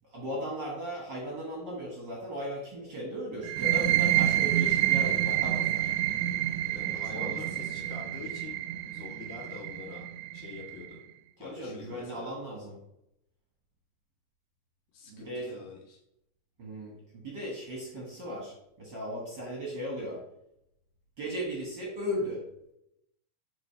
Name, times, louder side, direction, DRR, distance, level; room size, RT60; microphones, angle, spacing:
voice 1, 0.1-5.9 6.8-7.9 11.4-12.8 15.1-15.5 16.6-20.2 21.2-22.4, equal, 50° right, -2 dB, 1.3 m, -37 dB
sound 1, 3.4-10.9, right 12 dB, 85° right, 2.1 m, -28 dB
voice 2, 6.6-8.6 8.9-10.0 10.3-11.0 11.4-12.3 14.9-16.0, left 5 dB, 80° left, -2 dB, 3.1 m, -45 dB
8.3 x 3.5 x 4.3 m, 0.80 s
omnidirectional pair, 3.6 m